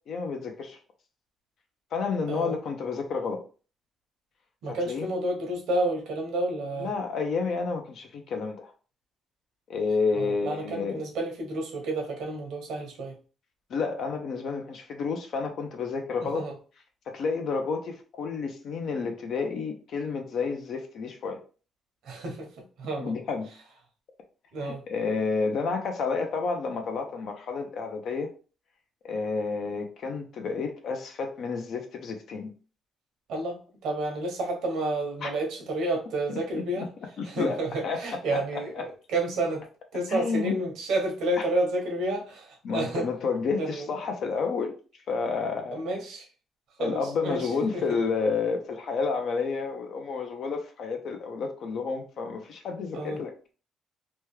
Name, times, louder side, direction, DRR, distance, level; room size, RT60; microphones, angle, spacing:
voice 1, 0.1-0.8 1.9-3.4 4.7-5.1 6.8-8.7 9.7-11.0 13.7-16.5 17.1-21.4 23.0-23.5 24.6-28.3 29.0-32.5 35.2-35.3 36.3-36.9 37.2-38.9 40.1-40.6 41.4-41.5 42.6-44.7 45.1-45.8 46.8-53.3, left 4 dB, 65° left, 0.6 m, -30 dB
voice 2, 4.6-6.9 10.1-13.2 16.3-16.5 22.1-22.5 22.8-23.1 24.5-24.8 33.3-33.6 33.8-36.9 37.3-39.6 39.9-42.5 42.7-43.0 43.6-43.9 45.7-46.3 46.8-47.4 52.9-53.2, right 2 dB, 80° right, 1.0 m, -30 dB
3.0 x 2.3 x 3.2 m
cardioid pair, 105°, 0 cm